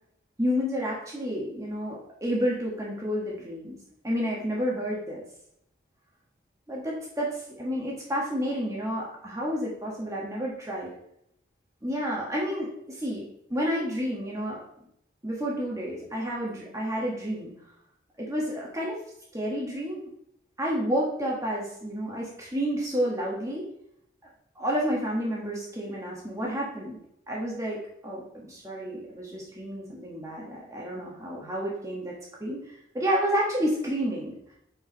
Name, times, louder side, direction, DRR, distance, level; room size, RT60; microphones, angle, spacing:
voice 1, 0.4-3.8 4.0-5.2 6.7-7.3 7.6-10.9 11.8-14.6 15.2-17.5 18.2-19.0 19.3-20.1 20.6-23.7 24.5-27.0 27.3-34.4, equal, 15° right, -4 dB, 1.5 m, -30 dB
6.8 x 4.8 x 5.5 m, 0.75 s
head